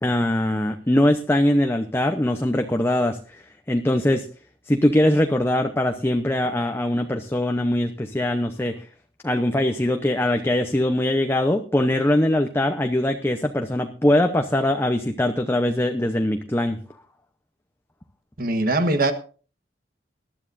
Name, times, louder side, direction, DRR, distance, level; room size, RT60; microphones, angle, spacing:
voice 1, 0.0-3.2 3.7-4.3 4.7-8.8 9.2-16.8, left 1 dB, 15° left, 5 dB, 0.8 m, -22 dB
voice 2, 18.4-19.1, right 2 dB, 55° right, 8 dB, 1.4 m, -21 dB
20.0 x 12.0 x 2.6 m, 0.38 s
head